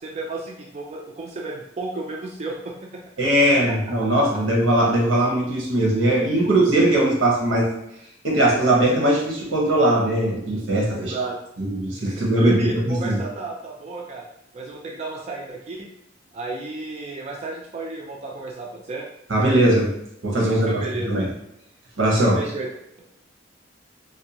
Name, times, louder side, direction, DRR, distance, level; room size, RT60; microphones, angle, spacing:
voice 1, 0.0-3.0 3.4-3.6 4.2-4.4 6.4-6.5 10.9-11.4 12.1-14.3 14.5-15.9 16.3-19.1 20.4-21.1 22.1-22.7, right 3 dB, 35° right, -2 dB, 0.3 m, -33 dB
voice 2, 3.2-7.7 8.2-11.1 11.6-13.2 19.3-19.9 20.2-21.2 22.0-22.4, right 1 dB, 80° right, -2 dB, 0.9 m, -20 dB
2.5 x 2.2 x 2.8 m, 0.79 s
head